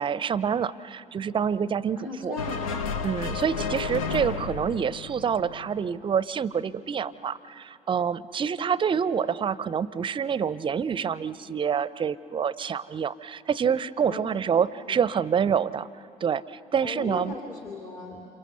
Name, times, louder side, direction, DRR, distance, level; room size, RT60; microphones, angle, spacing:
voice 1, 0.0-2.4 3.0-15.9 16.2-17.3, right 7 dB, 25° right, 19 dB, 0.6 m, -27 dB
voice 2, 2.0-2.8 14.1-14.3 14.9-15.0 16.8-18.3, left 3 dB, 45° left, 1 dB, 2.7 m, -37 dB
sound 1, 2.4-5.9, left 5 dB, 70° left, 0.8 m, -32 dB
28.5 x 27.5 x 6.8 m, 2.6 s
figure-of-eight pair, 55°, 18 cm